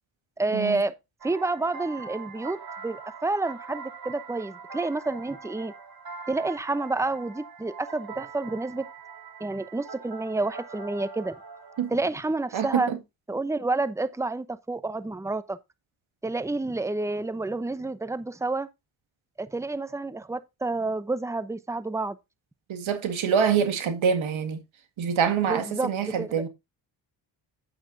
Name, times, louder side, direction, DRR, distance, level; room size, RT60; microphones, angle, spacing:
voice 1, 0.4-0.9 1.2-5.7 6.3-8.9 9.4-11.4 11.9-12.9 13.3-15.6 16.2-18.7 19.4-22.2 25.5-25.9 26.2-26.3, right 2 dB, 5° right, 0.8 m, -29 dB
sound 1, 1.2-12.0, right 5 dB, 45° right, 2.5 m, -42 dB
voice 2, 12.5-13.0 22.7-24.6 25.0-26.5, right 7 dB, 65° right, 2.0 m, -25 dB
9.0 x 8.7 x 2.7 m
supercardioid pair, 55°, 50 cm